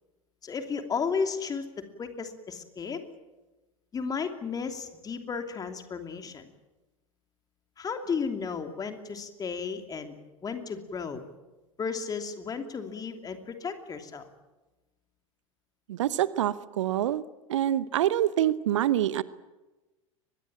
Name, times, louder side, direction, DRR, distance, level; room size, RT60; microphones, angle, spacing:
voice 1, 0.4-3.0 3.9-6.5 7.8-10.1 10.4-11.2 11.8-14.2, left 5 dB, 20° left, 6 dB, 2.9 m, -34 dB
voice 2, 15.9-17.2 17.5-19.2, right 12 dB, 60° right, 17 dB, 0.9 m, -26 dB
23.0 x 21.0 x 8.9 m, 1.1 s
figure-of-eight pair, 85°, 17 cm